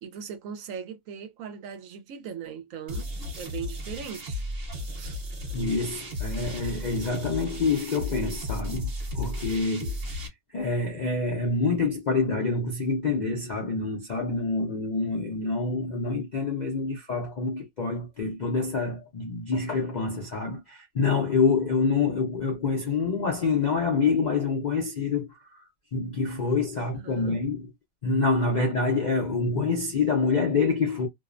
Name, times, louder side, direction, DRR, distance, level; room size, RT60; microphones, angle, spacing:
voice 1, 0.0-4.4 4.9-5.2 26.8-27.4, right 7 dB, 75° right, 0.9 m, -39 dB
sound 1, 2.9-10.3, left 1 dB, 50° right, 1.0 m, -34 dB
voice 2, 5.5-10.0 10.5-25.6 25.9-27.7 28.0-31.1, left 4 dB, 60° left, 0.4 m, -26 dB
2.6 x 2.0 x 2.4 m
omnidirectional pair, 1.5 m